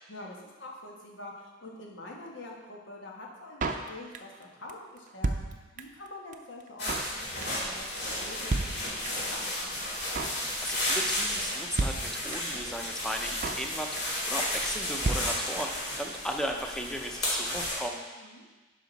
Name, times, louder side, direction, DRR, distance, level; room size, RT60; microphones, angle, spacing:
voice 1, 0.1-5.3 5.7-7.9 8.2-9.8 18.2-18.4, left 2 dB, 85° left, -1 dB, 1.5 m, -45 dB
Drum kit, 3.6-4.4 4.7-4.8 5.0-6.1 6.3-6.4 6.6-7.2 7.4-7.7 8.0-8.2 8.5-9.3 9.6-9.7 9.9-10.4 10.7-11.0 11.2-11.3 11.5-11.6 11.8-12.6 12.9-13.0 13.1-13.7 14.0-14.2 14.5-14.6 14.8-14.9 15.0-15.9 16.1-16.2 16.4-16.5, right 3 dB, 45° right, 0.5 m, -32 dB
sound 1, 6.8-17.7, left 1 dB, 60° left, 2.7 m, -33 dB
voice 2, 10.6-18.0, equal, 5° left, 2 dB, 0.6 m, -36 dB
10.5 x 5.1 x 4.1 m, 1.3 s
head